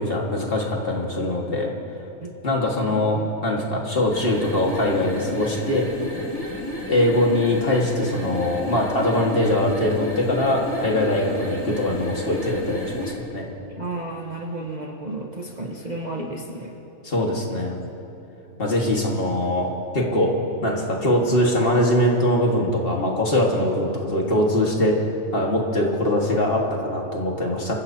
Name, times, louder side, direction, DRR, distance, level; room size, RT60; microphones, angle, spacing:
voice 1, 0.0-1.7 2.4-5.9 6.9-13.5 17.0-17.9 18.6-20.3 20.6-25.0 25.3-27.7, left 1 dB, 40° left, -1 dB, 2.0 m, -22 dB
voice 2, 2.9-3.4 13.8-16.8, right 2 dB, 35° right, 0 dB, 1.0 m, -32 dB
sound 1, 4.0-13.2, left 1 dB, 10° left, 2.2 m, -32 dB
27.0 x 15.0 x 2.8 m, 2.9 s
omnidirectional pair, 1.5 m